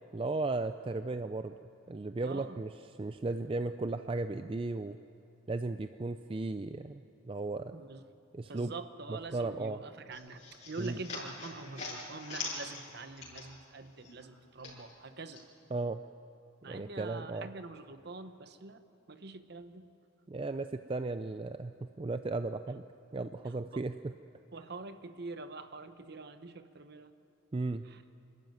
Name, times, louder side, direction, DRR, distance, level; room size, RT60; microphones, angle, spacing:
voice 1, 0.1-1.5 1.9-2.7 3.0-5.0 5.5-7.8 8.3-8.7 9.1-9.8 10.8-11.0 15.7-16.0 16.7-17.5 20.3-22.8 23.1-24.1 27.5-27.9, right 3 dB, 25° right, 9 dB, 0.4 m, -35 dB
voice 2, 2.2-2.6 7.7-8.0 8.5-15.5 16.6-19.9 23.7-23.8 24.5-27.1 27.8-28.0, right 3 dB, 55° right, 10 dB, 1.0 m, -45 dB
sound 1, 10.1-13.7 14.0-15.4, left 3 dB, 35° left, 5.5 m, -43 dB
27.0 x 13.0 x 9.3 m, 2.9 s
head